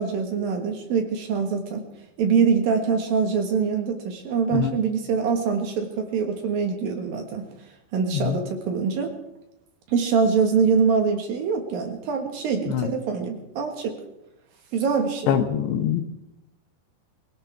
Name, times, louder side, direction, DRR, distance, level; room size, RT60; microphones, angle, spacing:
voice 1, 0.0-1.8 2.2-7.5 7.9-9.1 9.9-14.0 14.7-15.4, right 5 dB, 65° right, 4 dB, 2.9 m, -24 dB
voice 2, 15.3-16.0, left 9 dB, 80° left, 6 dB, 3.0 m, -23 dB
23.5 x 17.5 x 3.5 m, 0.86 s
omnidirectional pair, 5.0 m